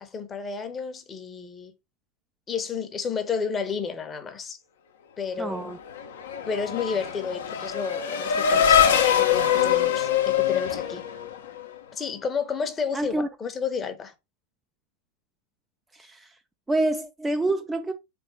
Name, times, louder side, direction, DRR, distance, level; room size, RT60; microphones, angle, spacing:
voice 1, 0.0-1.7 2.5-4.6 5.2-5.7 6.5-11.0 11.9-14.1, left 6 dB, 20° left, 0.9 m, -31 dB
voice 2, 5.4-5.8 12.9-13.3 15.9-16.4 16.7-17.9, right 2 dB, 10° right, 0.3 m, -27 dB
Race car auto racing / Accelerating revving vroom, 5.7-11.8, left 9 dB, 60° left, 0.8 m, -23 dB
4.1 x 3.4 x 3.4 m
figure-of-eight pair, 90°, 0 cm